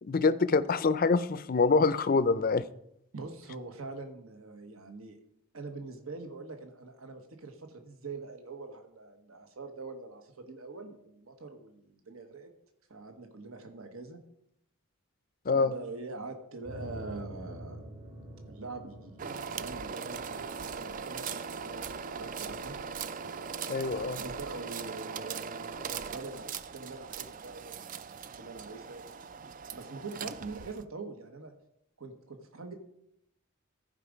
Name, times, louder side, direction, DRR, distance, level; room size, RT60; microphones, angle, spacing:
voice 1, 0.0-2.6 15.5-15.7 23.7-24.2, left 4 dB, 40° left, 15 dB, 0.4 m, -25 dB
voice 2, 3.1-5.2 5.5-12.5 12.9-14.2 15.5-17.8 18.5-22.7 23.9-29.0 29.7-31.5 32.0-32.8, right 3 dB, 80° right, 6 dB, 1.3 m, -44 dB
sound 1, 16.6-21.5, right 1 dB, 60° right, 3.4 m, -46 dB
sound 2, 19.2-30.8, right 6 dB, 40° right, 0.3 m, -40 dB
14.0 x 5.1 x 5.1 m, 0.77 s
head